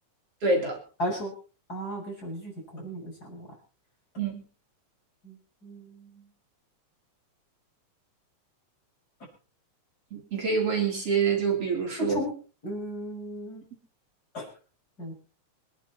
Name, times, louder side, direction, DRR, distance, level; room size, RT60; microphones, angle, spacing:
voice 1, 0.4-0.8 4.2-4.4 10.1-12.2, right 4 dB, 50° right, 1 dB, 4.3 m, -26 dB
voice 2, 1.0-1.3 1.7-3.5 5.2-6.3 12.0-12.3 12.6-13.6 14.3-14.5 15.0-15.1, equal, 30° left, -1 dB, 7.3 m, -35 dB
26.0 x 10.5 x 4.3 m, 0.36 s
omnidirectional pair, 3.4 m